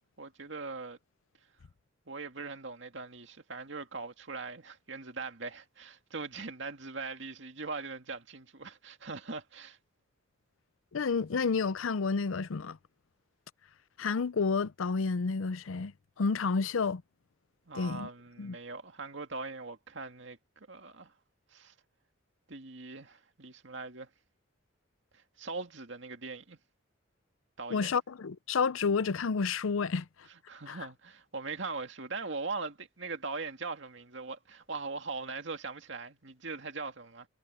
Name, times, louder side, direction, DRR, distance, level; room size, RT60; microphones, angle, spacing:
voice 1, 0.2-1.0 2.1-9.8 17.7-21.1 21.5-21.7 22.5-24.1 25.1-26.6 27.6-28.0 30.5-37.3, right 4 dB, 65° right, 2.2 m, -41 dB
voice 2, 10.9-12.8 14.0-15.9 16.2-17.0 17.7-18.1 18.4-18.6 27.7-30.1 30.7-30.8, left 5 dB, 85° left, 0.6 m, -30 dB
head